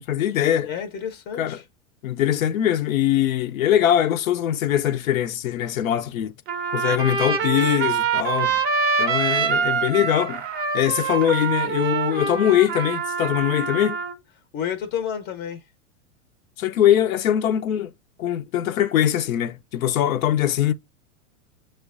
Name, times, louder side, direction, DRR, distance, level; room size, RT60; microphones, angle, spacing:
voice 1, 0.0-0.7 1.4-1.6 2.0-6.3 6.7-8.6 9.0-10.4 10.7-14.0 16.6-17.9 18.2-20.7, left 11 dB, 80° left, 0.6 m, -22 dB
voice 2, 0.6-1.6 14.5-15.6, left 8 dB, 30° left, 0.5 m, -30 dB
Trumpet, 6.5-14.1, right 5 dB, 25° right, 0.5 m, -25 dB
6.0 x 2.1 x 2.3 m
hypercardioid pair, 120°, 40 cm